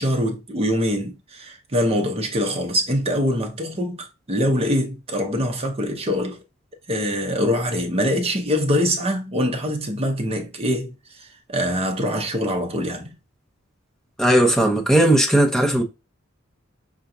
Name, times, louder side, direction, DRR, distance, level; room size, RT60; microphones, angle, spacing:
voice 1, 0.0-6.4 6.9-10.9 11.2-13.1, equal, 30° right, 0.8 m, -24 dB
voice 2, 14.2-15.8, right 1 dB, 5° left, 0.7 m, -17 dB
5.7 x 2.4 x 2.7 m
head